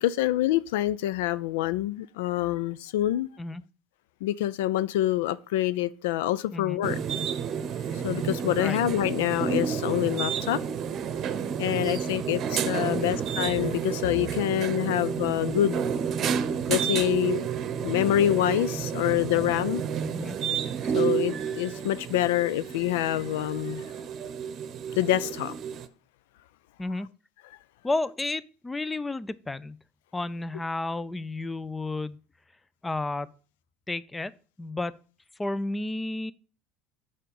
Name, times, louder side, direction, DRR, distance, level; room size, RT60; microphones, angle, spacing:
voice 1, 0.0-3.3 4.2-7.0 7.9-10.6 11.6-15.9 16.7-17.5 17.8-19.8 20.9-23.8 25.0-25.5, left 14 dB, 75° left, 0.4 m, -26 dB
Chinatown Hotel Elevator, 6.8-25.9, right 7 dB, 50° right, 0.8 m, -30 dB
voice 2, 27.8-29.8 30.1-32.2 32.8-33.3 33.9-34.3 34.6-34.9 35.4-36.3, left 2 dB, 15° left, 0.5 m, -32 dB
6.7 x 5.0 x 7.0 m
hypercardioid pair, 75°, 0 cm